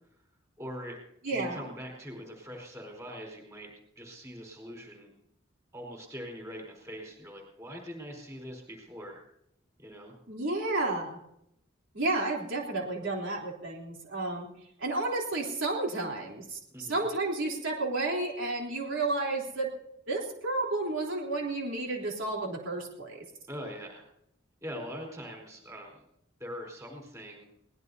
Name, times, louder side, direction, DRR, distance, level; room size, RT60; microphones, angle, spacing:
voice 1, 0.6-1.0 1.3-3.7 3.9-5.1 5.7-9.2 9.8-10.1 16.7-17.0 23.5-24.0 24.6-26.0 26.4-27.5, equal, 15° right, 0 dB, 4.5 m, -42 dB
voice 2, 1.2-1.6 10.3-11.2 11.9-14.5 14.8-19.7 20.1-23.2, right 2 dB, 75° right, -2 dB, 3.6 m, -31 dB
23.0 x 19.0 x 2.8 m, 0.78 s
head